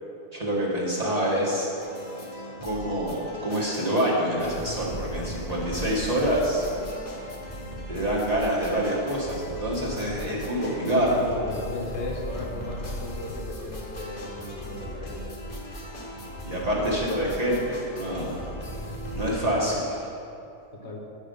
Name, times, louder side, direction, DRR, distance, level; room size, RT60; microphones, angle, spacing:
voice 1, 0.3-1.7 2.6-6.6 7.9-11.2 16.4-18.6 19.1-19.8, right 1 dB, 30° right, -5 dB, 1.2 m, -26 dB
sound 1, 1.8-19.4, equal, 35° left, 1.0 m, -37 dB
voice 2, 10.8-15.3 19.4-19.8 20.8-21.0, left 2 dB, 55° left, -1 dB, 1.2 m, -36 dB
8.7 x 5.1 x 5.2 m, 2.7 s
omnidirectional pair, 1.4 m